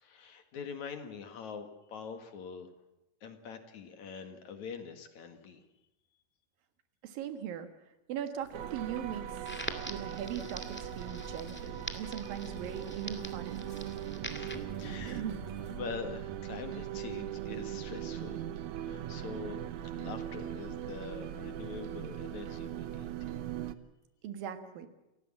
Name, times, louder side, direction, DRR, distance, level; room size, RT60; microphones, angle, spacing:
voice 1, 0.0-2.7 3.2-5.6 14.3-15.2 15.7-18.4 18.8-19.6 19.9-23.4, left 6 dB, 60° left, 7 dB, 3.1 m, -44 dB
voice 2, 7.0-7.7 8.1-9.4 9.8-13.7 14.9-15.4 24.2-24.9, right 9 dB, 85° right, 9 dB, 3.4 m, -40 dB
sound 1, 8.4-15.8, equal, 40° left, 8.1 m, -52 dB
sound 2, 8.5-23.8, right 11 dB, 70° right, 2.2 m, -40 dB
Crackle, 9.4-14.5, left 1 dB, 5° left, 1.3 m, -44 dB
29.0 x 15.5 x 7.5 m, 0.96 s
omnidirectional pair, 3.9 m